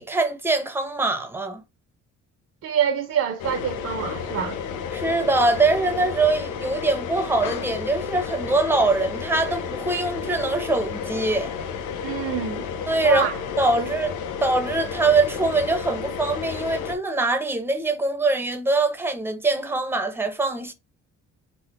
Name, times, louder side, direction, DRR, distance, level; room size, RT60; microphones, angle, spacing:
voice 1, 0.0-1.6 4.9-11.5 12.9-13.3 13.6-14.1 14.4-20.7, right 3 dB, 5° right, 0.7 m, -23 dB
voice 2, 2.6-4.6 12.0-12.7 13.0-13.3 13.8-13.9, right 8 dB, 55° right, 0.6 m, -25 dB
sound 1, 3.4-17.0, left 7 dB, 80° left, 0.6 m, -32 dB
3.7 x 2.1 x 3.5 m
cardioid pair, 90°, 30 cm